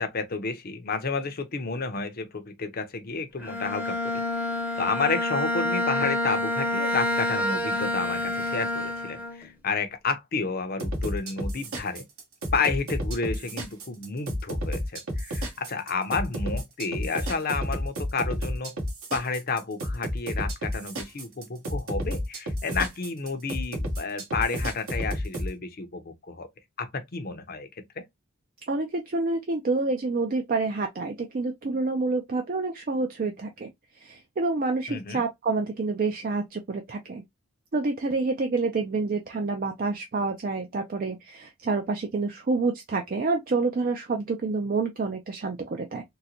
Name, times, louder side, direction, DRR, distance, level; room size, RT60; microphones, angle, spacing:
voice 1, 0.0-4.2 4.8-12.0 12.5-18.8 19.1-26.5 26.8-28.0 34.9-35.2, left 4 dB, 40° left, 0.6 m, -31 dB
Bowed string instrument, 3.4-9.5, left 1 dB, 5° right, 0.7 m, -28 dB
sound 1, 10.8-25.5, equal, 70° right, 1.3 m, -31 dB
voice 2, 28.7-33.7 34.0-37.2 37.7-46.0, right 3 dB, 40° right, 0.4 m, -28 dB
3.7 x 2.1 x 2.8 m
head